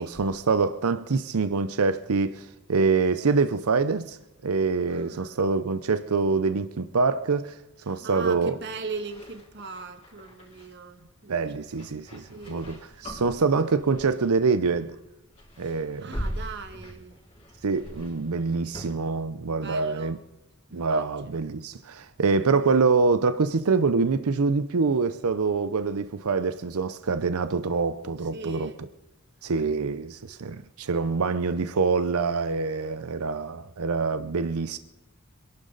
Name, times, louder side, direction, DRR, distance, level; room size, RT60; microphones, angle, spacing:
voice 1, 0.0-4.2 4.4-7.6 7.9-8.5 11.3-15.0 15.6-16.2 17.6-20.2 20.7-28.7 29.4-34.8, right 4 dB, 80° right, 0.6 m, -25 dB
voice 2, 4.9-5.5 7.9-12.9 15.7-17.1 19.6-20.2 20.7-21.0 28.3-28.8, right 4 dB, 50° right, 1.6 m, -40 dB
sound 1, 8.9-10.7 11.7-14.4 14.7-15.0 15.3-18.9, equal, 30° left, 5.0 m, -41 dB
26.0 x 11.5 x 4.0 m
head